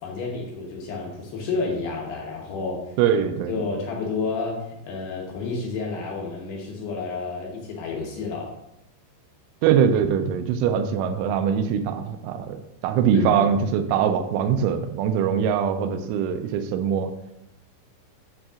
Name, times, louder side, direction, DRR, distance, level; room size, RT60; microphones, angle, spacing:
voice 1, 0.0-2.8 3.5-8.5 13.1-13.3, left 4 dB, 70° left, -1 dB, 2.7 m, -30 dB
voice 2, 3.0-3.6 9.6-17.1, right 8 dB, 85° right, 6 dB, 2.9 m, -22 dB
8.8 x 7.0 x 2.4 m, 0.85 s
omnidirectional pair, 5.7 m